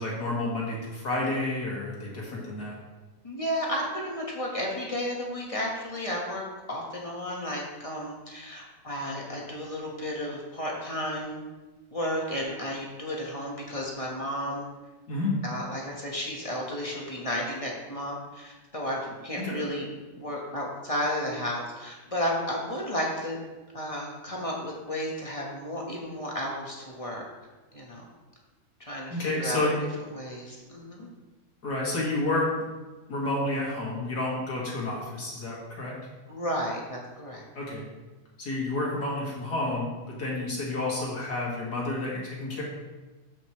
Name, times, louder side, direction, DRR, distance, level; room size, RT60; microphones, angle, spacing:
voice 1, 0.0-2.8 15.1-15.3 19.4-19.6 29.1-29.7 31.6-32.5 33.1-35.9 37.5-37.8 38.4-39.9 40.2-42.6, left 2 dB, 80° left, -4 dB, 2.6 m, -30 dB
voice 2, 3.2-11.4 11.9-14.6 15.4-19.9 20.2-23.4 23.7-27.2 27.7-28.1 28.8-29.6 30.1-31.1 36.3-37.4, equal, 25° left, -2 dB, 1.4 m, -33 dB
12.5 x 5.3 x 3.2 m, 1.2 s
omnidirectional pair, 1.7 m